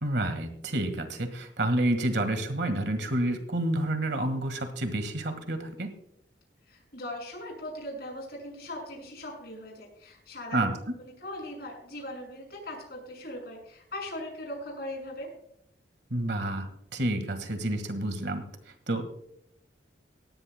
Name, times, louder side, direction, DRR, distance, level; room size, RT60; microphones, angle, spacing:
voice 1, 0.0-5.9 10.5-10.7 16.1-18.4 18.9-19.0, right 1 dB, 65° right, 9 dB, 1.7 m, -29 dB
voice 2, 6.7-10.7 11.2-15.3, left 1 dB, 55° left, 1 dB, 6.1 m, -39 dB
18.0 x 16.5 x 2.2 m, 0.74 s
head